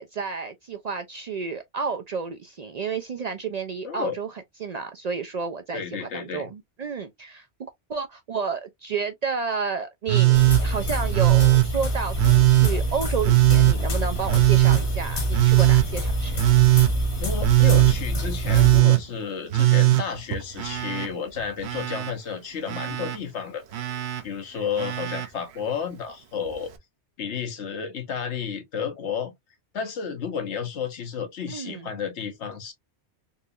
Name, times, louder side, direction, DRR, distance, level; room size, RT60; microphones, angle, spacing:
voice 1, 0.0-4.3 4.6-7.5 7.9-16.4 31.5-31.9, right 5 dB, 55° right, 0.4 m, -31 dB
voice 2, 3.8-4.2 5.7-6.5 17.2-23.9 24.2-26.7 27.2-29.3 29.7-32.7, left 7 dB, 90° left, 1.2 m, -32 dB
Telephone, 10.1-10.6 11.1-11.7 12.2-12.7 13.2-13.8 14.3-14.8 15.3-15.9 16.4-16.9 17.4-18.0 18.5-19.0 19.5-21.1 21.4-22.1 22.7-23.2 23.7-24.2 24.8-25.3 26.5-26.6, right 18 dB, 75° right, 0.9 m, -19 dB
sound 1, 10.3-18.8, right 1 dB, 70° left, 1.6 m, -26 dB
4.0 x 2.8 x 2.4 m
omnidirectional pair, 1.1 m